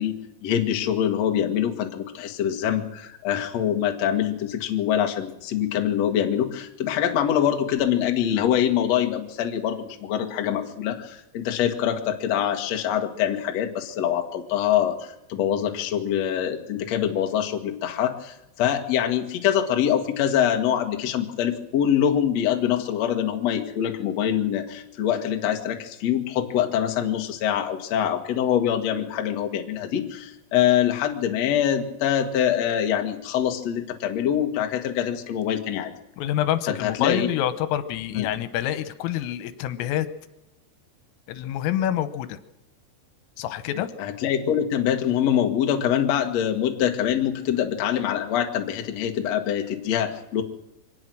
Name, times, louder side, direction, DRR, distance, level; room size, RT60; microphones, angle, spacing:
voice 1, 0.0-35.9 36.7-37.3 38.1-38.3 44.0-50.4, left 10 dB, 65° left, 4 dB, 1.6 m, -24 dB
voice 2, 36.2-40.1 41.3-42.4 43.4-43.9, left 11 dB, 85° left, 11 dB, 3.7 m, -27 dB
24.5 x 18.5 x 6.3 m, 0.91 s
omnidirectional pair, 5.8 m